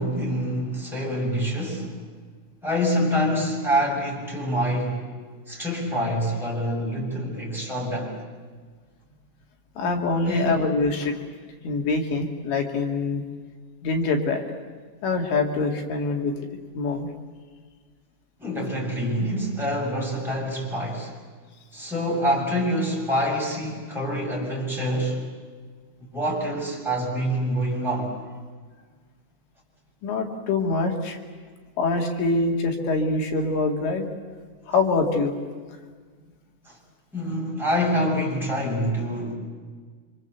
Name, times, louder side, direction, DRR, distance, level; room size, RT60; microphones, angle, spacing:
voice 1, 0.0-1.9 2.6-5.1 5.5-8.1 10.2-10.5 18.4-21.1 21.7-25.2 26.1-28.1 36.6-36.8 37.1-39.3, equal, ahead, -2 dB, 6.6 m, -26 dB
voice 2, 9.8-11.2 11.6-13.2 13.8-14.4 15.0-16.3 16.8-17.1 30.0-31.2 31.8-34.1 34.7-35.4, left 3 dB, 90° left, 3 dB, 4.7 m, -24 dB
28.0 x 26.0 x 8.1 m, 1.5 s
omnidirectional pair, 5.0 m